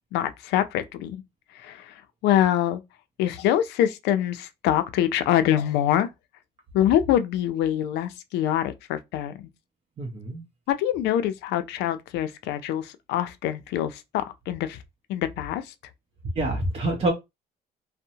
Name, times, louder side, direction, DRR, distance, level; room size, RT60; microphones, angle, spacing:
voice 1, 0.1-1.2 1.5-2.8 3.2-6.1 6.7-9.5 10.7-14.8 15.1-15.7, left 11 dB, 85° left, 0.4 m, -25 dB
voice 2, 10.0-10.4 16.4-17.1, right 1 dB, 35° right, 0.7 m, -26 dB
2.6 x 2.1 x 2.7 m
cardioid pair, 110°, 17 cm